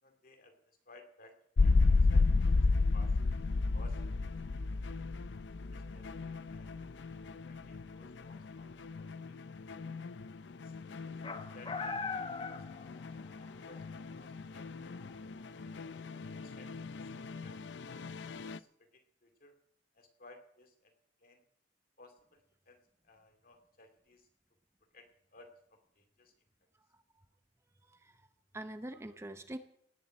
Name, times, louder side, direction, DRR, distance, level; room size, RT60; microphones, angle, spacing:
voice 1, 0.0-1.3 1.6-2.3 2.5-2.6 2.9-3.4 3.7-4.0 5.7-6.9 7.4-8.7 9.0-9.7 10.4-10.7 11.2-12.1 12.5-15.7 16.3-17.6 17.9-18.0 18.3-19.6 19.9-20.9 21.2-21.4 22.0-22.8 23.0-24.3 24.9-26.3, left 2 dB, 50° left, 6 dB, 2.4 m, -60 dB
sound 1, 1.6-18.6, left 3 dB, 70° left, 0.5 m, -33 dB
sound 2, 11.2-13.4 13.7-13.8 15.0-15.1, left 4 dB, 30° left, 0.9 m, -39 dB
voice 2, 27.9-28.2 28.5-29.6, right 1 dB, 15° right, 9 dB, 0.7 m, -44 dB
18.0 x 7.3 x 8.8 m, 0.69 s
head